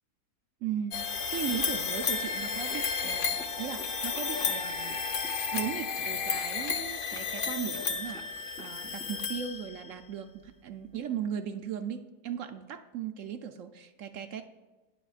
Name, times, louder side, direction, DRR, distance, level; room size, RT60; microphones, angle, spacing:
voice 1, 0.6-5.0 5.5-14.4, right 9 dB, 65° right, 7 dB, 0.8 m, -37 dB
sound 1, 0.9-10.0, left 5 dB, 50° left, 0.6 m, -32 dB
sound 2, 2.2-9.5, equal, 5° left, 0.4 m, -50 dB
18.5 x 6.9 x 2.4 m, 1.2 s
omnidirectional pair, 1.6 m